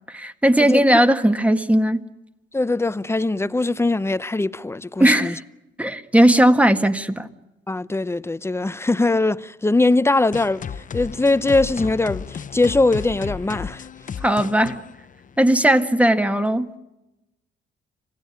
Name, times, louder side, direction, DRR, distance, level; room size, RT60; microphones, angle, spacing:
voice 1, 0.1-2.0 5.0-5.4 5.8-7.3 14.2-14.8 15.4-16.7, right 1 dB, 5° right, 1.8 m, -17 dB
voice 2, 2.5-5.3 7.7-10.6 10.9-13.8, left 2 dB, 10° left, 0.8 m, -21 dB
sound 1, 10.3-15.8, left 7 dB, 40° left, 0.8 m, -34 dB
27.0 x 17.5 x 10.0 m
cardioid pair, 90°, 20 cm